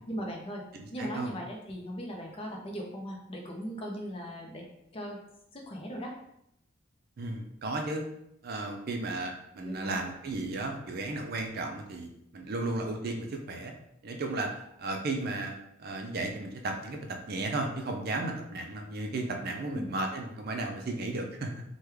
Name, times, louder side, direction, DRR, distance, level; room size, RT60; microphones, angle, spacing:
voice 1, 0.1-0.6 0.9-4.6 4.9-5.2 5.5-6.1 9.6-10.0 19.6-19.9, equal, 30° left, 0 dB, 0.5 m, -38 dB
voice 2, 0.7-1.3 7.2-8.0 8.4-13.7 14.0-14.5 14.8-21.6, right 2 dB, 50° right, 3 dB, 0.4 m, -34 dB
3.4 x 2.2 x 3.1 m, 0.78 s
head